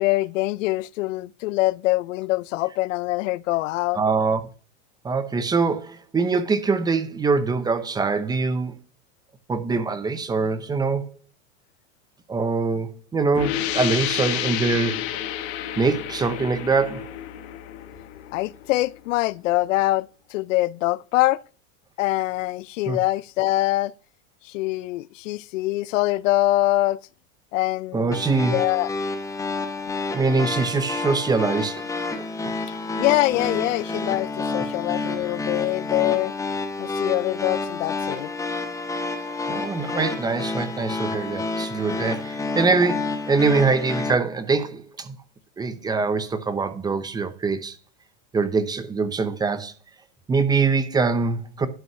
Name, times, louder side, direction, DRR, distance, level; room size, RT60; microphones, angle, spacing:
voice 1, 0.0-4.0 18.3-21.4 22.0-23.9 24.4-27.0 27.5-28.2 28.5-28.9 32.7-36.3 36.8-38.3, left 17 dB, 75° left, 0.5 m, -24 dB
voice 2, 3.9-4.4 5.0-8.8 9.5-11.1 12.3-15.1 15.8-17.1 22.9-23.0 27.9-28.6 30.1-31.8 32.4-32.6 39.4-45.2 45.6-47.8 48.3-49.7 50.3-51.7, right 4 dB, 10° right, 0.7 m, -23 dB
sound 1, 13.3-18.8, left 12 dB, 60° left, 1.4 m, -30 dB
sound 2, 28.1-44.1, left 3 dB, 10° left, 1.0 m, -29 dB
11.0 x 5.3 x 5.7 m
supercardioid pair, 150°, 38 cm